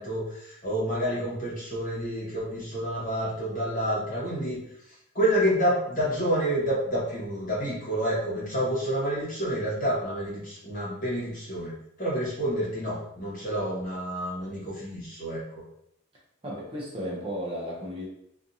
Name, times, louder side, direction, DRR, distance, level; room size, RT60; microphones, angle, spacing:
voice 1, 0.0-4.6 4.9-15.6, equal, 40° left, -7 dB, 1.2 m, -29 dB
voice 2, 16.4-18.1, equal, 25° right, -4 dB, 0.5 m, -34 dB
2.5 x 2.5 x 2.6 m, 0.76 s
head